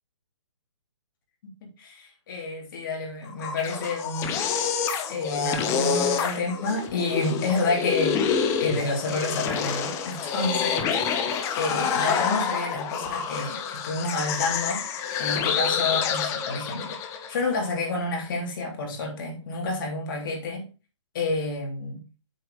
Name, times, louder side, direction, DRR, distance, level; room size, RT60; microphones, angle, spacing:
voice 1, 1.4-4.4 5.1-8.2 8.6-14.8 15.2-17.0 17.3-20.7 21.1-22.0, left 3 dB, 45° left, 3.2 m, -29 dB
sound 1, 3.3-17.4, left 7 dB, 20° left, 0.8 m, -27 dB
8.1 x 4.8 x 5.0 m
hypercardioid pair, 145°, 16 cm